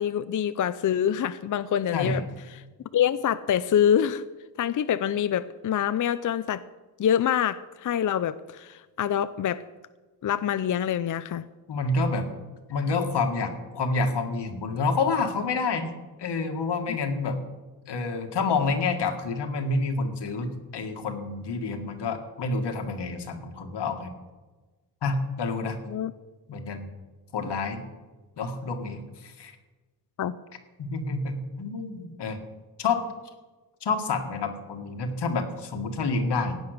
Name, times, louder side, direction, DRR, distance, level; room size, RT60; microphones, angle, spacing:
voice 1, 0.0-2.2 2.9-4.2 4.6-6.6 7.0-9.6 10.2-11.4 25.9-26.1 30.2-30.3, left 9 dB, 50° left, 13 dB, 0.5 m, -25 dB
voice 2, 11.7-12.3 12.7-15.9 16.2-17.4 17.9-24.1 25.0-25.8 26.5-26.9 27.3-27.8 28.4-29.5 30.8-32.4 32.8-33.0 33.8-36.6, left 3 dB, 85° left, 5 dB, 1.9 m, -28 dB
16.5 x 9.5 x 6.6 m, 1.2 s
wide cardioid pair, 135°, 40 cm